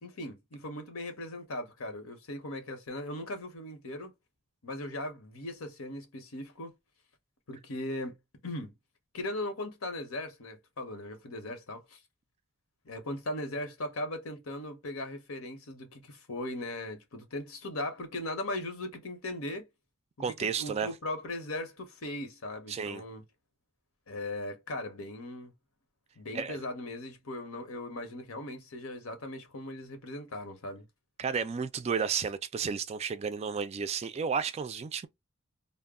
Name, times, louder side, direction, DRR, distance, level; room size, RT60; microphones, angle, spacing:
voice 1, 0.0-4.1 4.6-6.7 7.5-8.2 8.4-8.7 9.1-12.0 12.8-19.6 20.2-23.2 24.1-25.5 26.2-30.8, left 1 dB, 85° left, 0.9 m, -38 dB
voice 2, 20.2-20.9 22.7-23.0 26.3-26.6 31.2-35.1, right 6 dB, 30° right, 0.3 m, -32 dB
2.2 x 2.0 x 3.5 m
head